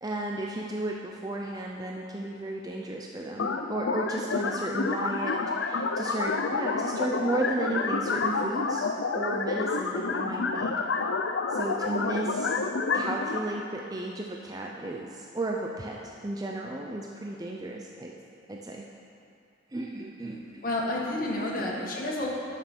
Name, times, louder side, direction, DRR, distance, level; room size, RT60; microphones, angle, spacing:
voice 1, 0.0-8.9 9.1-10.8 11.5-12.6 12.9-18.1 18.5-18.9 19.7-20.6 21.5-21.7, right 2 dB, 20° right, 0 dB, 0.5 m, -34 dB
sound 1, 3.4-13.4, left 4 dB, 85° left, 0.6 m, -29 dB
voice 2, 20.6-22.3, left 1 dB, 50° left, -3 dB, 1.8 m, -30 dB
10.5 x 6.7 x 6.2 m, 2.5 s
head